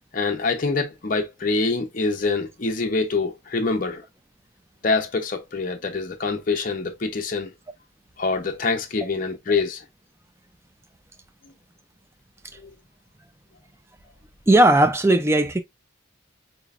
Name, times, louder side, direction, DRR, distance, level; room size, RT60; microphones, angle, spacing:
voice 1, 0.1-4.0 4.8-7.5 8.2-9.8 12.6-12.7, left 3 dB, 40° left, 0.6 m, -25 dB
voice 2, 14.5-15.6, right 1 dB, 15° right, 0.4 m, -17 dB
4.1 x 3.0 x 2.4 m
head